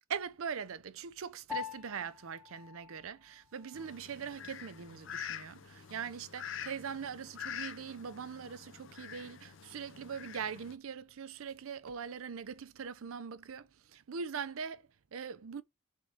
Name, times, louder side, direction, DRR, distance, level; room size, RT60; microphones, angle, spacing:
voice 1, 0.1-15.6, right 6 dB, 75° right, 0.5 m, -42 dB
Piano, 1.5-11.1, left 10 dB, ahead, 0.5 m, -50 dB
Fowl, 3.7-10.7, left 8 dB, 60° left, 0.5 m, -46 dB
3.6 x 3.6 x 3.5 m
head